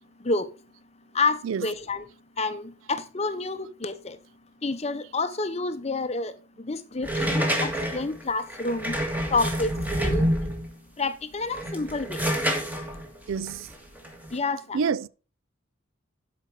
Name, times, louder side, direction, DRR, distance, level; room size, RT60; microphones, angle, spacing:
voice 1, 1.1-2.1 2.4-4.2 4.6-6.3 6.6-8.9 9.3-9.7 10.0-10.3 11.0-12.2 14.3-14.8, left 3 dB, 30° left, 0.7 m, -28 dB
sound 1, 7.0-10.7 11.4-14.4, equal, 10° right, 1.7 m, -28 dB
voice 2, 13.3-13.7 14.7-15.1, right 6 dB, 75° right, 0.4 m, -27 dB
12.0 x 5.1 x 4.7 m
head